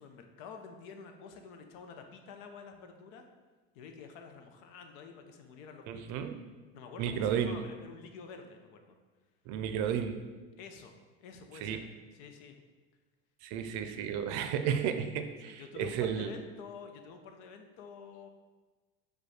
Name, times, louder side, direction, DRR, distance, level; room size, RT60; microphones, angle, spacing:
voice 1, 0.0-3.3 3.7-6.2 6.7-9.0 10.6-11.8 12.1-12.6 15.4-18.3, left 5 dB, 75° left, 5 dB, 0.7 m, -49 dB
voice 2, 5.9-6.4 7.0-7.6 9.5-10.2 11.6-11.8 13.4-16.3, right 8 dB, 65° right, 8 dB, 0.5 m, -33 dB
4.8 x 2.3 x 4.7 m, 1.3 s
supercardioid pair, 120°, 30 cm